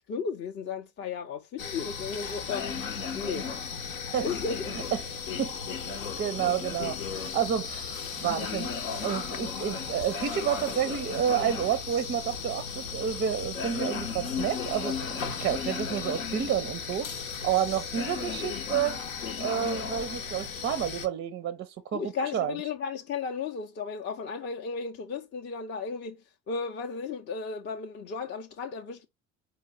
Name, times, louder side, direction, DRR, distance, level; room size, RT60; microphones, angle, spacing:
voice 1, 0.1-2.8 3.1-3.6 4.2-4.8 21.9-26.2 26.5-29.1, left 5 dB, 25° left, 0.5 m, -34 dB
sound 1, 1.6-21.1, left 6 dB, 75° left, 0.8 m, -35 dB
voice 2, 5.1-5.5 5.9-8.7 9.0-15.1 15.4-19.0 19.4-22.0 22.3-22.6, right 9 dB, 30° right, 0.5 m, -30 dB
4.5 x 2.7 x 3.6 m
figure-of-eight pair, 60°, 41 cm